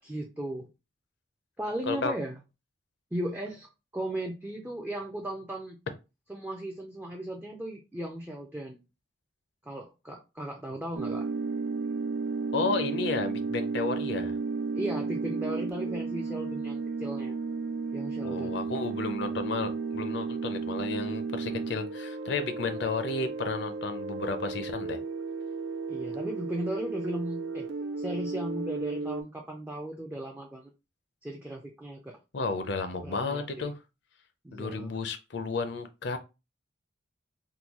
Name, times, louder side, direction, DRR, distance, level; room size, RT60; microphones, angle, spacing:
voice 1, 0.0-0.7 1.6-2.4 3.1-5.8 6.3-8.8 9.6-11.3 14.7-17.4 17.9-18.5 25.9-27.7 28.0-30.7 31.2-32.2 33.0-33.7 34.4-35.0, right 1 dB, 10° right, 0.4 m, -36 dB
sound 1, 10.9-29.2, right 4 dB, 80° right, 0.5 m, -33 dB
voice 2, 12.5-14.4 18.2-25.0 32.3-33.7 34.5-36.2, left 4 dB, 55° left, 0.5 m, -32 dB
3.7 x 2.2 x 2.9 m
head